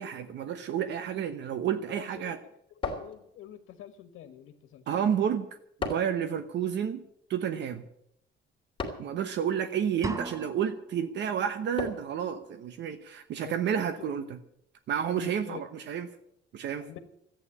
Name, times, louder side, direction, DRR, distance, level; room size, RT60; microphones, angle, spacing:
voice 1, 0.0-2.4 4.9-5.5 5.8-7.0 7.3-7.8 9.0-14.2 14.9-16.1 16.5-16.9, right 8 dB, 60° right, 10 dB, 1.0 m, -30 dB
voice 2, 1.9-2.6 3.0-4.8 5.2-5.3 13.4-13.5 14.0-14.1 15.1-15.7 16.8-17.0, left 11 dB, 85° left, 8 dB, 1.5 m, -46 dB
sound 1, 2.8-3.7 5.8-6.3 8.8-9.2 11.8-12.2, left 3 dB, 25° left, 2.6 m, -35 dB
sound 2, 10.0-11.0, right 3 dB, 15° right, 0.8 m, -36 dB
14.0 x 9.0 x 9.8 m, 0.75 s
cardioid pair, 170°, 20 cm